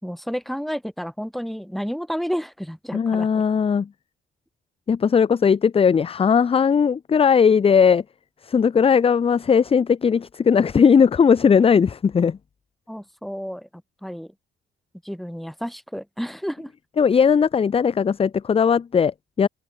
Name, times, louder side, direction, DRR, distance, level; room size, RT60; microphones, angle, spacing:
voice 1, 0.0-3.4 12.9-13.7 14.0-14.3 15.0-16.7, equal, ahead, 5.6 m, -31 dB
voice 2, 2.9-3.9 4.9-8.0 8.5-12.4 17.0-19.5, left 6 dB, 30° left, 0.6 m, -18 dB
open air
cardioid pair, 90°, 20 cm